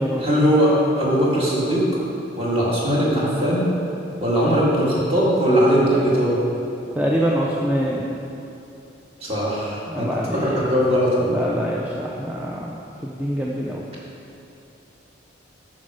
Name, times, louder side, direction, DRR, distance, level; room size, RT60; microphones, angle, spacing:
voice 1, 0.2-1.8 2.4-3.7 4.2-6.4 9.2-11.4, equal, 30° right, -7 dB, 2.2 m, -20 dB
voice 2, 7.0-8.1 9.9-10.6 11.3-12.7 13.0-13.8, equal, 10° right, -4 dB, 0.5 m, -25 dB
9.5 x 6.4 x 5.0 m, 2.8 s
head